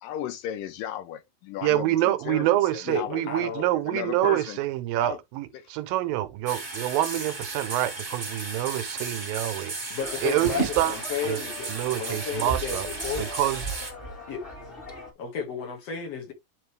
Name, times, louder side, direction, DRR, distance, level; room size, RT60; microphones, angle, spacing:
voice 1, 0.0-2.5 2.7-3.3 3.9-4.6 4.9-5.2 5.5-5.8, left 10 dB, 80° left, 2.3 m, -35 dB
voice 2, 1.6-9.7 10.2-11.0 11.2-11.4 11.7-12.9 13.2-13.6, right 14 dB, 80° right, 2.4 m, -26 dB
voice 3, 2.9-3.7 4.2-4.4 9.9-11.7 12.0-13.5 14.3-14.4 15.2-16.3, left 6 dB, 50° left, 2.5 m, -33 dB
sound 1, 6.5-13.9, right 2 dB, 20° right, 1.4 m, -35 dB
sound 2, 10.0-15.1, right 2 dB, 20° left, 2.0 m, -36 dB
10.5 x 4.0 x 3.3 m
omnidirectional pair, 4.2 m